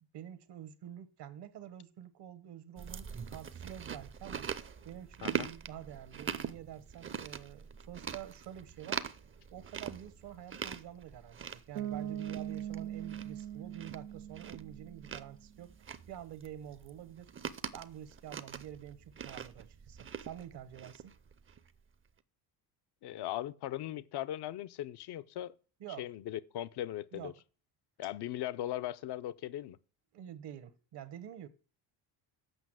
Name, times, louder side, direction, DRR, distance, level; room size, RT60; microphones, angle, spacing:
voice 1, 0.1-4.5 4.8-9.0 9.5-15.7 16.1-17.3 17.7-21.1 25.8-26.1 27.1-27.3 30.1-31.5, right 10 dB, 55° right, 1.1 m, -48 dB
Chewing mastication, 2.8-21.7, right 7 dB, 25° right, 0.6 m, -43 dB
Bass guitar, 11.8-15.5, right 11 dB, 85° right, 0.9 m, -41 dB
voice 2, 23.0-25.5 26.0-27.3 28.0-29.8, left 13 dB, 55° left, 0.7 m, -39 dB
8.0 x 5.7 x 7.7 m
supercardioid pair, 80°, 47 cm